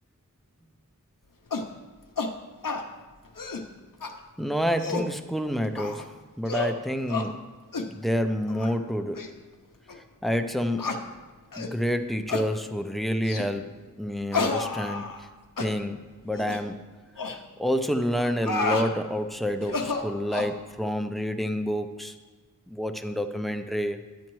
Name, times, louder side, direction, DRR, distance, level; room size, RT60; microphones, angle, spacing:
sound 1, 1.5-1.7 2.2-2.3 2.6-2.8 3.3-3.7 4.0-4.1 4.6-5.1 5.8-6.1 6.5-6.8 7.1-7.3 7.7-7.9 8.5-8.7 9.1-9.3 9.9-10.0 10.8-11.0 11.5-11.7 12.3-12.5 13.2-13.5 14.3-15.3 15.6-15.7 16.3-16.6 17.2-17.4 18.2-18.9 19.6-20.5, left 4 dB, 85° left, 0.7 m, -30 dB
voice 1, 4.4-7.5 7.8-9.3 10.2-10.9 11.6-13.7 14.0-15.1 15.6-16.0 16.2-16.8 17.6-22.1 22.7-24.1, equal, ahead, 7 dB, 0.6 m, -28 dB
10.5 x 8.9 x 3.1 m, 1.3 s
wide cardioid pair, 45°, 32 cm